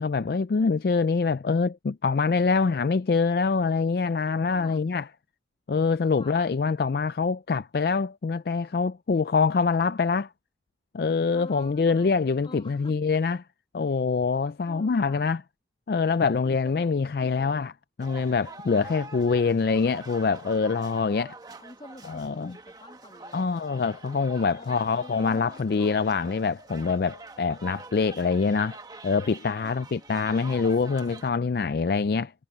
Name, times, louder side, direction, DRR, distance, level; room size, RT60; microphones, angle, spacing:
voice 1, 0.0-5.1 5.7-10.3 10.9-13.4 13.7-15.4 15.9-17.7 18.0-21.4 22.1-22.5 23.3-28.8 29.0-32.3, left 4 dB, 60° left, 0.4 m, -25 dB
voice 2, 4.5-4.9 6.2-6.5 11.3-12.2 12.4-13.0 14.7-15.3 16.2-17.7 18.7-19.0 21.6-23.6 24.6-26.2 29.6-29.9, left 1 dB, 30° left, 2.3 m, -48 dB
sound 1, 18.0-31.3, right 3 dB, 20° right, 1.2 m, -45 dB
head